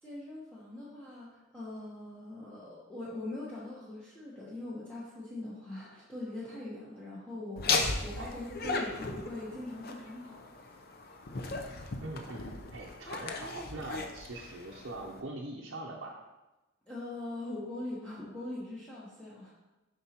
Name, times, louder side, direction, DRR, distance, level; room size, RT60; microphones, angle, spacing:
voice 1, 0.0-10.4 16.9-19.5, left 2 dB, 5° left, -9 dB, 1.0 m, -42 dB
Laughter, 7.6-15.2, left 3 dB, 50° left, 0.6 m, -36 dB
voice 2, 8.2-8.9 12.0-16.2, right 2 dB, 60° right, -1 dB, 0.6 m, -43 dB
6.9 x 5.2 x 2.9 m, 1.1 s
head